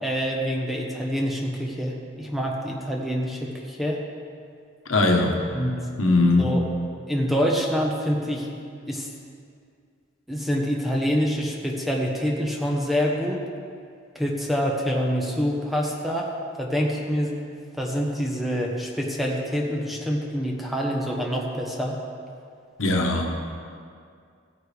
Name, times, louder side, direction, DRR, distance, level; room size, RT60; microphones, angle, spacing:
voice 1, 0.0-4.0 5.5-5.7 6.4-6.6 7.1-8.5 8.9-9.1 10.3-13.4 14.1-16.3 16.6-17.3 17.8-22.0, equal, ahead, -1 dB, 1.0 m, -26 dB
voice 2, 4.9-5.4 6.0-6.5 22.8-23.3, left 2 dB, 85° left, 2 dB, 1.2 m, -20 dB
15.0 x 9.5 x 3.4 m, 2.3 s
head